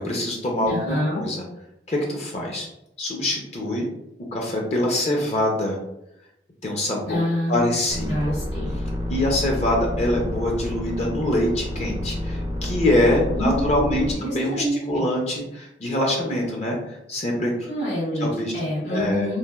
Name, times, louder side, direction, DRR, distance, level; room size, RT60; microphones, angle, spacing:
voice 1, 0.0-1.4 1.9-2.7 3.0-3.9 4.3-5.8 6.6-7.2 7.5-8.3 9.1-16.8 17.1-17.7 18.2-18.5 18.9-19.3, left 1 dB, 35° left, -1 dB, 0.5 m, -24 dB
voice 2, 0.7-1.2 7.1-7.8 8.1-8.7 13.4-15.1 17.7-19.4, equal, 85° left, -9 dB, 1.4 m, -27 dB
sound 1, 7.9-14.2, left 1 dB, 20° right, 0.4 m, -29 dB
3.1 x 2.3 x 2.3 m, 0.83 s
head